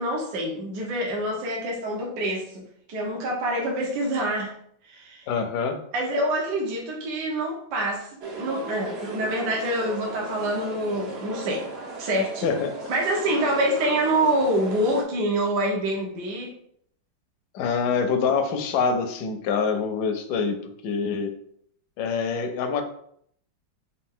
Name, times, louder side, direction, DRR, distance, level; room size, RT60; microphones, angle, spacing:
voice 1, 0.0-2.6 2.9-4.5 4.9-5.2 5.9-8.1 8.4-11.7 12.0-12.6 12.9-16.5, right 1 dB, 60° right, -2 dB, 1.4 m, -26 dB
voice 2, 5.3-5.8 12.4-12.7 17.5-21.3 22.0-22.8, left 5 dB, 70° left, 6 dB, 1.1 m, -25 dB
sound 1, 8.2-15.0, right 3 dB, 90° right, 0.5 m, -36 dB
4.2 x 2.5 x 3.6 m, 0.67 s
omnidirectional pair, 2.1 m